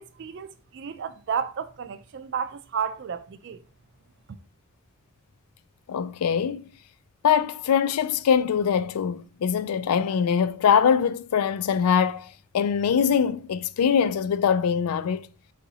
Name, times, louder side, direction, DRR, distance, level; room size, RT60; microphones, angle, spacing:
voice 1, 0.0-3.6, right 7 dB, 50° right, 0.3 m, -32 dB
voice 2, 5.9-6.6 7.2-15.2, left 7 dB, 85° left, 0.4 m, -23 dB
4.7 x 4.2 x 2.7 m
head